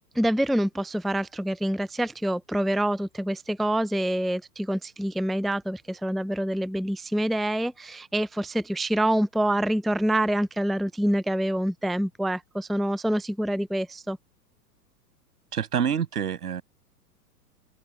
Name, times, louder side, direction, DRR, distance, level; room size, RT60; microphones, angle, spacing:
voice 1, 0.1-14.2, right 1 dB, ahead, 0.7 m, -26 dB
voice 2, 15.5-16.6, right 8 dB, 70° right, 6.7 m, -27 dB
open air
figure-of-eight pair, 100°, 48 cm